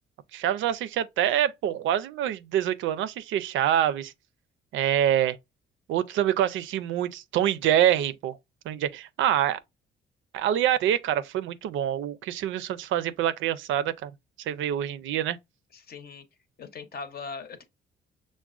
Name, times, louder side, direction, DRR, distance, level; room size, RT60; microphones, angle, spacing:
voice 1, 0.3-4.1 4.7-5.4 5.9-8.4 8.7-9.6 10.3-14.1 14.5-15.4, right 11 dB, 80° right, 0.4 m, -26 dB
voice 2, 15.7-16.2 16.6-17.6, left 4 dB, 50° left, 0.8 m, -40 dB
5.9 x 2.1 x 2.4 m
cardioid pair, 90°, 20 cm